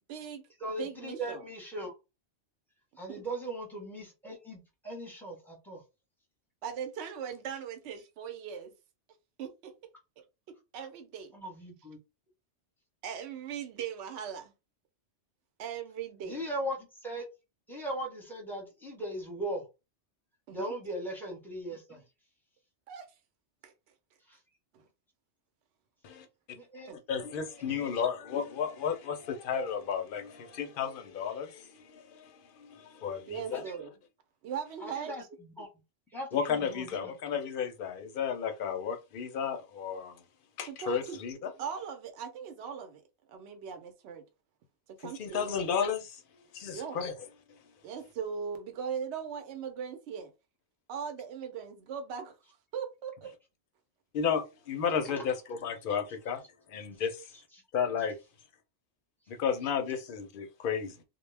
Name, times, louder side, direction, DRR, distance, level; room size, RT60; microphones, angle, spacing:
voice 1, 0.1-0.4 0.7-1.4 3.1-3.2 6.6-8.7 9.4-9.7 10.7-11.3 13.0-14.5 15.6-16.4 20.5-20.7 22.9-23.1 23.6-23.7 24.7-24.8 26.9-27.0 33.3-33.9 34.4-35.3 40.7-41.2 41.6-43.0 43.3-44.2 44.9-45.7 46.7-47.0 47.8-50.3 50.9-52.4 52.7-53.3, right 7 dB, 70° right, 0.9 m, -39 dB
voice 2, 0.6-1.9 3.0-5.8 11.3-12.0 16.3-17.2 17.7-19.6 20.5-22.0 24.3-24.4 26.5-26.9 33.5-33.8 34.8-35.7 36.1-37.1 55.2-55.3, right 1 dB, ahead, 0.8 m, -39 dB
voice 3, 27.1-33.6 36.3-40.2 40.6-41.5 45.0-46.2 46.5-47.1 54.1-56.4 56.7-57.3 57.7-58.2 59.3-61.0, left 7 dB, 55° left, 0.6 m, -33 dB
2.2 x 2.1 x 3.2 m
omnidirectional pair, 1.2 m